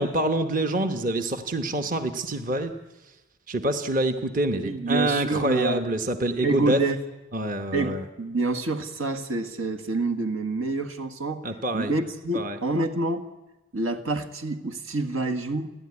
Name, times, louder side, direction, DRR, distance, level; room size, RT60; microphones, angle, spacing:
voice 1, 0.0-2.7 3.5-6.8 7.3-8.0 11.4-11.9 12.3-12.6, right 1 dB, 40° right, 7 dB, 1.1 m, -26 dB
voice 2, 4.5-5.8 6.4-7.0 7.7-11.4 11.7-13.2 13.7-15.7, right 3 dB, 85° right, 7 dB, 1.7 m, -27 dB
30.0 x 11.5 x 9.8 m, 1.1 s
head